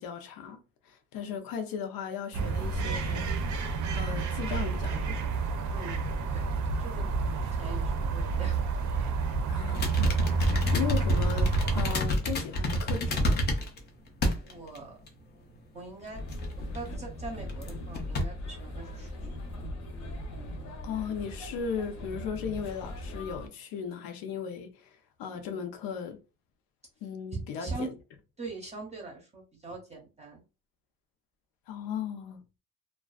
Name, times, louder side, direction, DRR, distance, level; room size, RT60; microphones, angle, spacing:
voice 1, 0.0-3.5 3.9-5.3 9.4-13.5 20.8-24.9 25.2-26.2 27.0-27.9 31.7-32.4, left 7 dB, 90° left, 0.7 m, -37 dB
sound 1, 2.3-12.0, right 4 dB, 55° right, 0.5 m, -29 dB
voice 2, 6.8-8.6 14.4-15.0 15.7-16.2 16.7-19.2 25.3-25.6 27.3-27.9 28.4-30.4, right 3 dB, 20° right, 0.7 m, -41 dB
sound 2, 9.7-13.8 14.2-14.8 15.1-15.2 16.3-16.8 17.5-17.7 17.9-18.2, equal, 30° left, 0.4 m, -28 dB
sound 3, 16.1-23.5, left 1 dB, 55° left, 0.7 m, -39 dB
2.4 x 2.3 x 2.3 m
cardioid pair, 165°, 34 cm